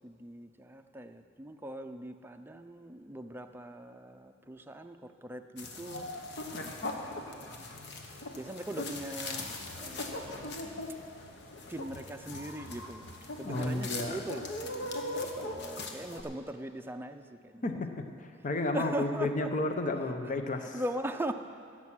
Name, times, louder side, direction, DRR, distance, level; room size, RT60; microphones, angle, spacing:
voice 1, 0.0-6.1 6.9-7.6 8.0-9.5 9.8-10.6 11.7-13.1 13.4-17.7 18.7-19.5 20.1-20.2 20.6-21.3, right 1 dB, 10° right, 6 dB, 0.5 m, -40 dB
sound 1, 5.6-16.2, left 2 dB, 60° left, 1.2 m, -40 dB
voice 2, 13.4-14.3 17.6-17.9 18.2-20.8, left 2 dB, 40° left, 6 dB, 0.7 m, -32 dB
16.5 x 7.4 x 6.2 m, 2.6 s
head